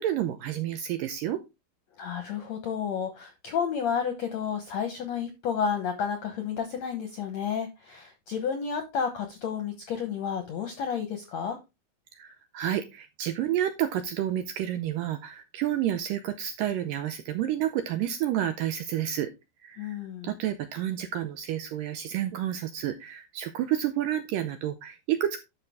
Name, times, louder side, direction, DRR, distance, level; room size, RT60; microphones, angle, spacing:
voice 1, 0.0-1.4 12.2-19.3 19.6-25.4, right 11 dB, 85° right, 9 dB, 2.0 m, -30 dB
voice 2, 2.0-11.6 19.8-20.3, left 7 dB, 65° left, 6 dB, 1.7 m, -31 dB
11.5 x 5.6 x 3.5 m, 0.25 s
omnidirectional pair, 4.6 m